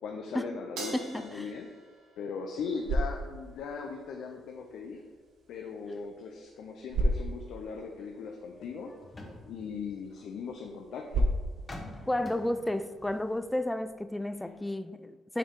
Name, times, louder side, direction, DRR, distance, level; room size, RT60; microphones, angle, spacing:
voice 1, 0.0-1.7 2.2-5.0 5.5-8.9 9.4-11.3, left 5 dB, 80° left, 0.6 m, -39 dB
Crash cymbal, 0.8-3.3, right 3 dB, 90° right, 1.6 m, -44 dB
voice 2, 0.9-1.5 12.1-15.4, left 1 dB, 10° left, 0.4 m, -32 dB
sound 1, 2.5-13.6, right 1 dB, 65° right, 1.0 m, -36 dB
sound 2, 8.4-10.7 11.5-14.3 14.6-14.7, left 1 dB, 25° left, 1.0 m, -48 dB
7.0 x 4.6 x 3.8 m
cardioid pair, 90°, 0 cm